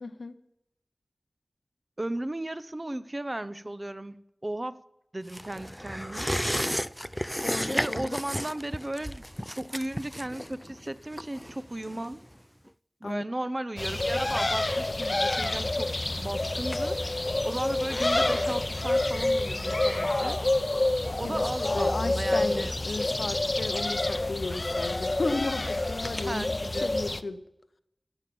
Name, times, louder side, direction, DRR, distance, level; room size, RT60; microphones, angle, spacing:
voice 1, 0.0-0.3 7.4-8.2 13.0-13.2 21.2-27.4, left 3 dB, 80° left, 11 dB, 0.9 m, -34 dB
voice 2, 2.0-4.8 5.1-6.4 7.7-12.2 13.0-17.2 17.4-20.4 21.2-22.8 26.2-26.9, right 1 dB, 30° right, 14 dB, 0.7 m, -35 dB
sound 1, 5.3-12.4 12.7-12.8, equal, ahead, 0.4 m, -33 dB
sound 2, 13.8-27.2, left 2 dB, 40° left, 0.7 m, -28 dB
14.5 x 9.2 x 7.0 m, 0.84 s
wide cardioid pair, 60°, 0 cm